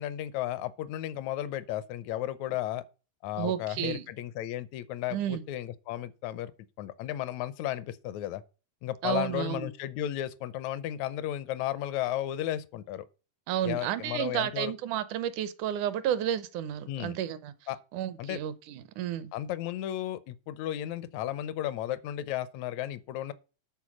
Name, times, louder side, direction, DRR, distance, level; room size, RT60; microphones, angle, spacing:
voice 1, 0.0-2.8 3.2-6.5 6.8-8.4 8.8-13.1 13.6-14.7 16.9-17.2 17.7-17.8 18.2-18.4 19.3-23.3, left 12 dB, 75° left, 1.8 m, -34 dB
voice 2, 3.4-4.1 5.1-5.4 9.0-9.7 13.5-17.5 17.9-19.3, right 11 dB, 75° right, 2.1 m, -32 dB
11.5 x 4.4 x 6.2 m
omnidirectional pair, 3.7 m